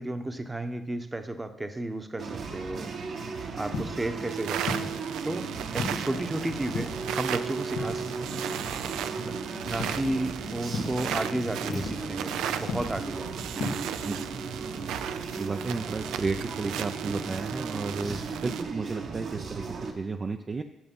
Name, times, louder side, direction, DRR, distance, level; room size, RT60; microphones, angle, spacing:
voice 1, 0.0-2.9 3.5-4.9 5.2-5.4 5.7-8.3 9.2-9.3 9.6-13.4 18.1-18.3, right 1 dB, 15° right, 8 dB, 0.9 m, -33 dB
sound 1, 2.2-19.9, right 4 dB, 60° right, 1.2 m, -36 dB
sound 2, 3.7-4.1 4.7-5.2 5.8-6.2 6.7-7.2 7.8-8.3 9.8-10.1 10.7-11.1 11.7-12.2 12.7-13.1 13.6-13.9, left 3 dB, 80° left, 1.4 m, -35 dB
sound 3, 4.3-18.6, right 10 dB, 90° right, 0.4 m, -36 dB
voice 2, 15.4-20.6, right 4 dB, 35° right, 5 dB, 0.5 m, -33 dB
8.8 x 6.7 x 5.4 m, 0.88 s
cardioid pair, 90°, 0 cm